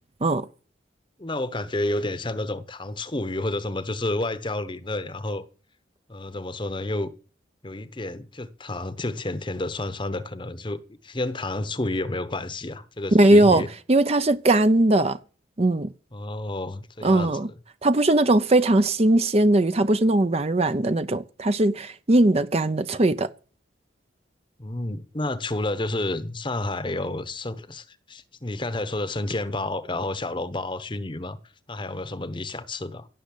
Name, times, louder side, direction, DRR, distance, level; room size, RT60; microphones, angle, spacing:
voice 1, 1.2-5.4 6.1-7.1 7.6-13.7 16.1-17.5 24.6-31.4 31.7-33.1, left 2 dB, 25° left, 1.0 m, -30 dB
voice 2, 13.1-13.6 13.9-15.2 15.6-15.9 17.0-17.5 17.8-23.3, right 2 dB, 35° right, 0.6 m, -19 dB
16.5 x 6.5 x 8.4 m
head